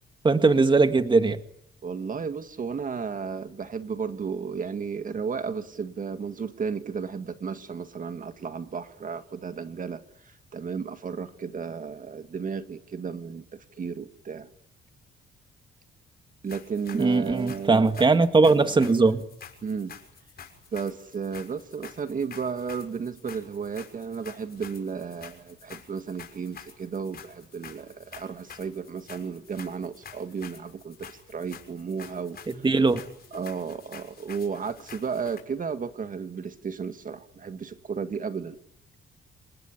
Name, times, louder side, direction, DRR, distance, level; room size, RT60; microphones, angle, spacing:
voice 1, 0.2-1.4 16.9-19.2 32.6-33.0, right 3 dB, 25° right, 2.0 m, -20 dB
voice 2, 1.8-14.5 16.4-18.1 19.6-19.9 20.7-32.7 33.3-38.6, right 6 dB, 40° right, 1.9 m, -34 dB
sound 1, 16.5-35.4, left 7 dB, 50° left, 6.4 m, -48 dB
28.5 x 19.0 x 9.9 m
cardioid pair, 90°, 20 cm